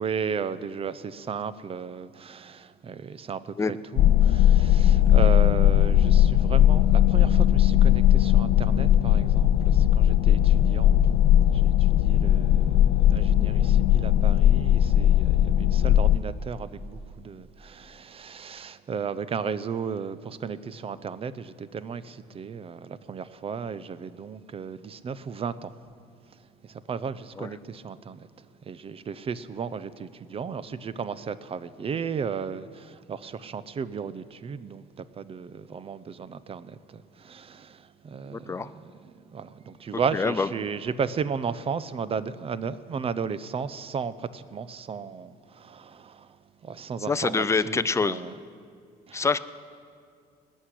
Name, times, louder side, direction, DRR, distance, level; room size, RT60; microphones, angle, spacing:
voice 1, 0.0-11.0 11.5-25.7 26.3-48.4 49.1-49.4, right 6 dB, 35° right, 0.6 m, -35 dB
sound 1, 4.0-16.2, left 11 dB, 65° left, 0.5 m, -19 dB
voice 2, 38.3-38.7 40.1-40.5 47.1-48.2 49.1-49.4, left 4 dB, 15° left, 0.5 m, -25 dB
19.0 x 6.4 x 9.9 m
cardioid pair, 110°, 17 cm